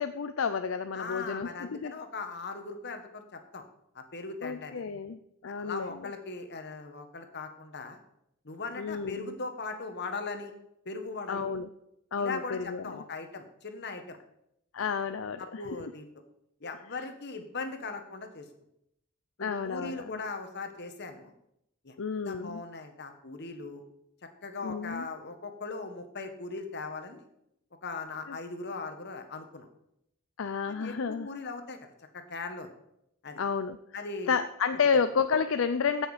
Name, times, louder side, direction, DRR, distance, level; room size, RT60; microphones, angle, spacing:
voice 1, 0.0-1.9 4.4-6.0 8.8-9.3 11.3-11.7 12.1-13.0 14.7-15.6 19.4-20.2 22.0-22.6 24.6-25.1 28.3-28.4 30.4-31.3 33.4-33.8 34.3-36.1, left 6 dB, 75° left, 10 dB, 0.5 m, -31 dB
voice 2, 0.9-3.6 3.9-4.8 5.5-8.0 8.4-10.5 10.8-11.5 12.2-14.2 14.8-14.9 15.4-16.1 16.6-18.4 19.4-21.3 21.8-21.9 22.2-23.8 24.4-27.3 27.8-29.7 30.7-32.7 33.2-33.4 33.9-34.4 34.9-35.0, left 3 dB, 55° left, 7 dB, 1.5 m, -39 dB
15.5 x 6.3 x 5.0 m, 0.78 s
head